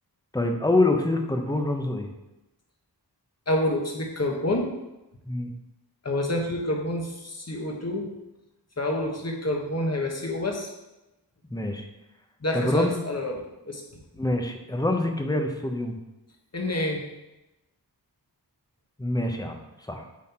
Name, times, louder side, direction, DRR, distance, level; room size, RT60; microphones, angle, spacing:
voice 1, 0.3-2.1 5.3-5.5 11.5-11.9 12.5-13.0 14.1-16.0 19.0-19.6 19.9-20.0, left 2 dB, 10° left, 4 dB, 0.8 m, -25 dB
voice 2, 3.5-4.7 6.0-8.1 8.8-10.7 12.4-13.8 16.5-17.0, left 1 dB, 40° left, 1 dB, 1.3 m, -28 dB
7.4 x 4.2 x 4.3 m, 0.96 s
wide cardioid pair, 70°, 41 cm